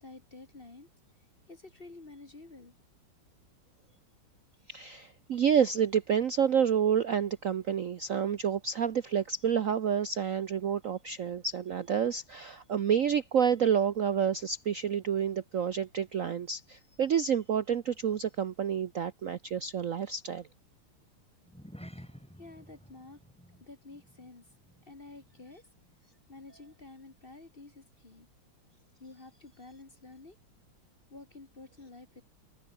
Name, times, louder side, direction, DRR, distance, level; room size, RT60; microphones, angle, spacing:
voice 1, 0.0-0.9 1.5-2.8 22.0-22.1 22.4-23.2 23.6-24.5 24.8-25.7 26.3-28.3 29.0-30.4 31.1-32.2, left 3 dB, 30° left, 1.8 m, -50 dB
voice 2, 4.7-20.4, right 8 dB, 60° right, 0.9 m, -29 dB
sound 1, 21.4-26.1 26.3-26.6 27.1-27.2, equal, 5° left, 7.7 m, -52 dB
omnidirectional pair, 2.3 m